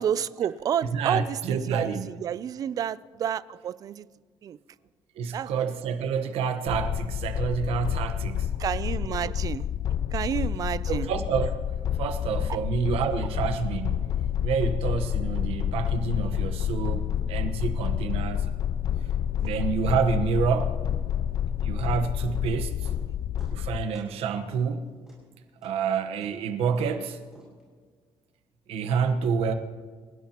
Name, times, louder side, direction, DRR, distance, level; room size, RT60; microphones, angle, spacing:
voice 1, 0.0-4.1 4.4-4.6 5.3-5.6 8.6-9.7 10.1-11.1 12.5-12.6 19.4-19.5, right 9 dB, 40° right, 0.4 m, -30 dB
voice 2, 0.9-2.1 5.2-8.5 10.9-11.5 12.0-14.1 14.4-18.5 19.4-20.8 21.6-22.7 23.5-24.9 25.6-27.2 28.7-29.5, right 6 dB, 85° right, 1.2 m, -28 dB
sound 1, 6.7-23.8, left 10 dB, 40° left, 0.3 m, -29 dB
sound 2, 22.3-23.6 23.9-24.2 24.5-27.6, right 2 dB, 5° right, 6.3 m, -52 dB
27.0 x 16.5 x 2.9 m
cardioid pair, 180°, 10 cm